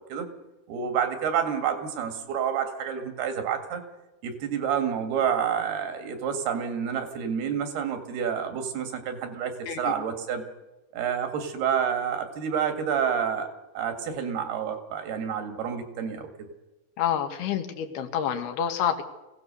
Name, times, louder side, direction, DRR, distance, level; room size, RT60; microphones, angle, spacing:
voice 1, 0.7-3.8 4.2-10.4 10.9-13.5 13.8-16.5, right 7 dB, 80° right, 7 dB, 4.0 m, -29 dB
voice 2, 17.0-19.0, left 9 dB, 90° left, 6 dB, 3.5 m, -28 dB
24.0 x 17.0 x 6.9 m, 1.1 s
omnidirectional pair, 4.5 m